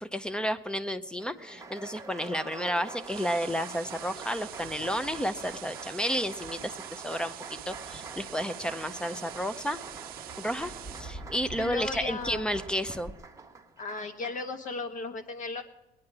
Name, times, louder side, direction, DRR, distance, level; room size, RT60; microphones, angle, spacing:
voice 1, 0.0-9.8 10.4-13.1, equal, 5° left, 13 dB, 0.6 m, -32 dB
Applause, 1.2-14.5, right 4 dB, 20° right, 1.2 m, -45 dB
sound 1, 2.9-11.0, right 14 dB, 60° right, 0.4 m, -45 dB
Thunder, 3.7-13.1, right 1 dB, 25° left, 1.9 m, -49 dB
voice 2, 11.6-12.5 13.8-15.6, left 4 dB, 50° left, 6 dB, 1.4 m, -36 dB
19.0 x 9.8 x 4.7 m, 0.92 s
cardioid pair, 110°, 17 cm